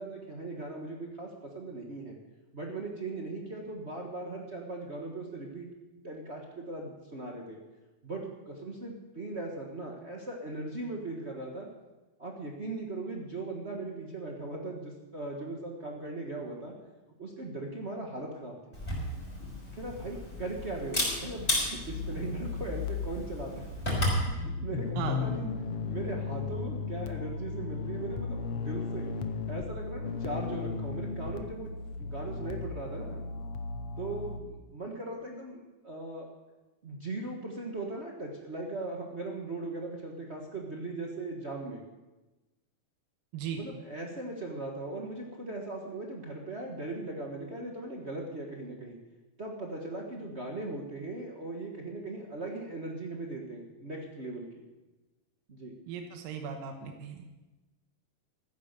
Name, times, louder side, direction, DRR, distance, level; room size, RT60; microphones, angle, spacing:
voice 1, 0.0-2.2 2.5-5.7 6.0-7.6 8.0-11.7 12.2-16.7 17.2-18.8 19.7-23.6 24.3-25.5 25.9-29.1 29.5-31.7 32.0-33.2 34.0-36.3 36.8-41.8 43.6-49.0 49.4-54.5 55.5-55.7, right 2 dB, 55° right, 0 dB, 0.7 m, -39 dB
Camera, 18.7-24.2, left 1 dB, 10° left, 5.7 m, -33 dB
sound 1, 21.9-34.4, left 4 dB, 85° left, 1.3 m, -36 dB
voice 2, 55.9-57.2, right 7 dB, 90° right, 5 dB, 2.8 m, -37 dB
15.0 x 9.8 x 6.7 m, 1.1 s
omnidirectional pair, 3.8 m